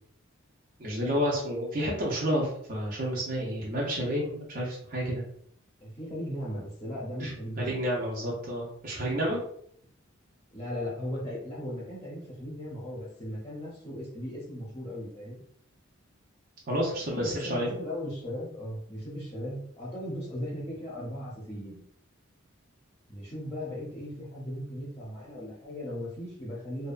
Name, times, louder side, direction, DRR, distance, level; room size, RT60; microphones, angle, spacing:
voice 1, 0.8-5.2 7.2-9.4 16.7-17.7, equal, 40° right, -4 dB, 0.5 m, -30 dB
voice 2, 5.8-7.8 10.5-15.4 17.0-21.8 23.1-26.9, equal, 20° left, -7 dB, 0.6 m, -37 dB
2.6 x 2.2 x 2.4 m, 0.66 s
head